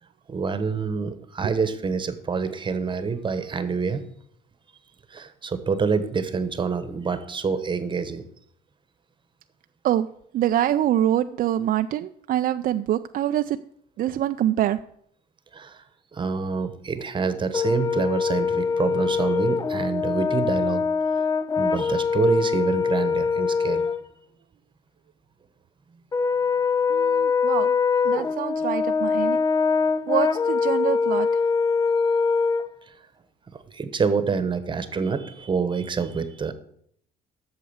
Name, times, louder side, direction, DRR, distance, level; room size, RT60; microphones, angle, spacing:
voice 1, 0.3-4.0 5.1-8.2 15.5-15.8 16.1-20.8 21.6-23.9 32.9-33.0 33.5-36.5, right 5 dB, 30° right, 11 dB, 1.1 m, -27 dB
voice 2, 10.3-13.6 14.0-14.8 26.9-27.7 28.0-29.4 30.1-31.4, right 12 dB, 55° right, 9 dB, 0.4 m, -25 dB
Brass instrument, 17.5-24.0 26.1-32.7, left 5 dB, 20° left, 0.5 m, -23 dB
8.5 x 6.7 x 8.0 m, 0.68 s
cardioid pair, 110°, 17 cm